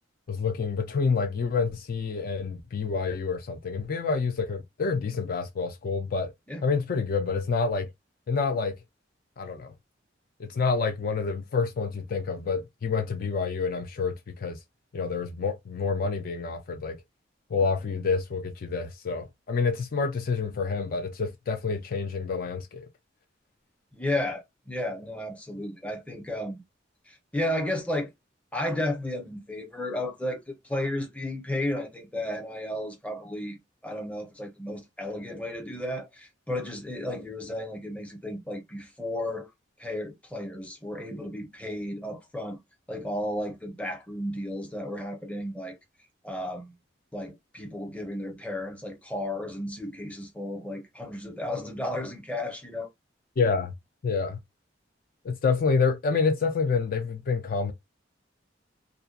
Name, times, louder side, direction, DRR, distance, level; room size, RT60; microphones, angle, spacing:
voice 1, 0.3-6.3 6.6-7.9 8.3-8.7 9.4-9.7 10.4-14.6 14.9-17.0 17.5-22.9 53.4-53.7 54.0-54.4 55.2-57.7, left 4 dB, 50° left, 0.4 m, -28 dB
voice 2, 23.9-26.6 27.1-28.1 28.5-33.6 33.8-39.5 39.8-42.6 42.9-45.8 46.2-46.7 47.1-52.9, left 1 dB, 5° left, 0.6 m, -33 dB
2.6 x 2.1 x 2.3 m
head